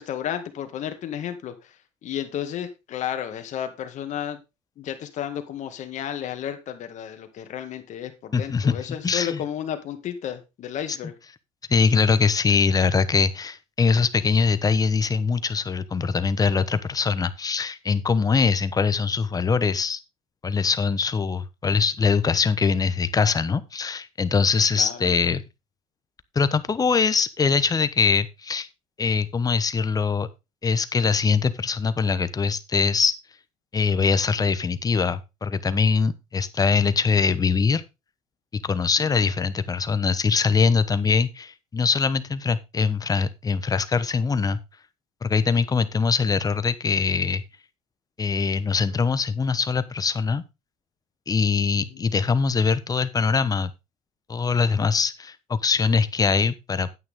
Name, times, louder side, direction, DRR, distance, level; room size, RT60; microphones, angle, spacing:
voice 1, 0.0-1.8 2.0-4.4 4.8-11.1 18.4-18.5 24.7-25.1 39.0-39.3 45.5-45.9 51.9-52.0, left 10 dB, 55° left, 8 dB, 2.0 m, -33 dB
voice 2, 8.3-9.4 11.7-20.0 20.4-25.4 26.3-28.7 29.0-30.3 30.6-33.2 33.7-37.8 38.5-44.6 45.2-47.4 48.2-50.4 51.3-53.7 54.3-56.9, left 5 dB, 25° left, 14 dB, 1.0 m, -22 dB
9.4 x 8.7 x 3.6 m, 0.26 s
supercardioid pair, 100°, 15 cm